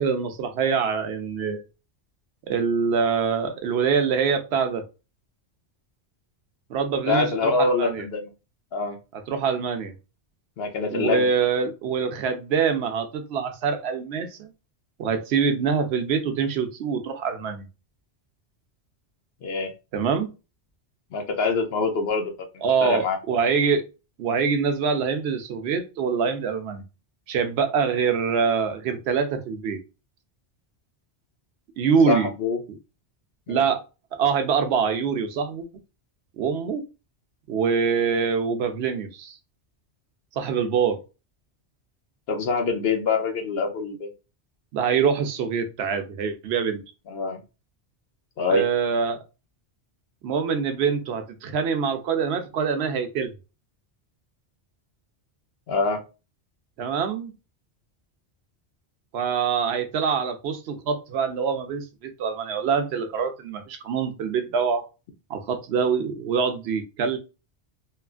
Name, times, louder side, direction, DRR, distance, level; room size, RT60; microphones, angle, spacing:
voice 1, 0.0-1.6 2.5-4.8 6.7-8.1 9.3-9.9 10.9-14.5 15.0-17.7 19.9-20.3 22.6-23.8 24.2-26.8 27.3-29.8 31.8-32.3 33.5-33.8 34.1-35.7 36.4-36.8 37.5-39.4 40.4-41.0 44.7-46.8 48.5-49.2 50.2-53.3 56.8-57.3 59.1-64.9 65.3-67.2, right 6 dB, 70° right, 0.8 m, -24 dB
voice 2, 7.1-8.3 8.7-9.0 10.6-11.3 19.4-19.7 21.1-23.2 32.1-32.6 33.5-33.6 42.3-44.1 47.1-47.4 48.4-48.6 55.7-56.0, left 4 dB, 65° left, 0.8 m, -25 dB
3.0 x 2.3 x 2.3 m
omnidirectional pair, 1.2 m